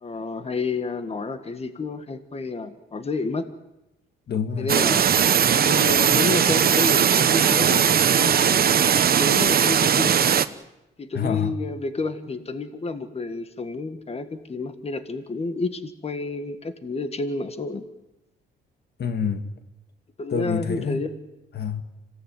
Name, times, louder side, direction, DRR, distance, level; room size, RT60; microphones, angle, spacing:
voice 1, 0.0-3.5 4.6-5.1 5.5-8.7 9.1-10.2 11.0-17.8 20.2-21.1, left 3 dB, 30° left, 1.8 m, -30 dB
voice 2, 4.3-4.7 11.1-11.5 19.0-19.5 20.3-21.0 21.5-21.8, left 7 dB, 55° left, 1.9 m, -27 dB
sound 1, 4.7-10.5, right 8 dB, 50° right, 1.1 m, -19 dB
26.0 x 17.5 x 9.3 m
cardioid pair, 90°, 20 cm